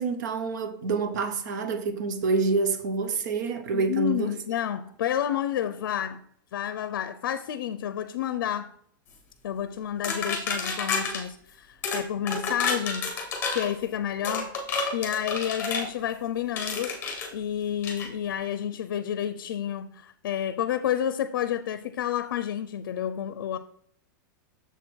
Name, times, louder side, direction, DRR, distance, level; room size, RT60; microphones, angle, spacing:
voice 1, 0.0-4.3, right 4 dB, 60° right, 0.9 m, -27 dB
voice 2, 3.7-6.2 6.5-8.7 9.4-13.1 13.5-14.5 14.9-16.9 17.3-23.6, left 10 dB, 80° left, 0.5 m, -30 dB
sound 1, 10.0-11.2 11.8-12.0 12.3-13.7 14.2-15.9 16.6-17.3 17.8-18.1, left 4 dB, 20° left, 1.3 m, -30 dB
6.9 x 4.3 x 4.6 m
supercardioid pair, 175°, 11 cm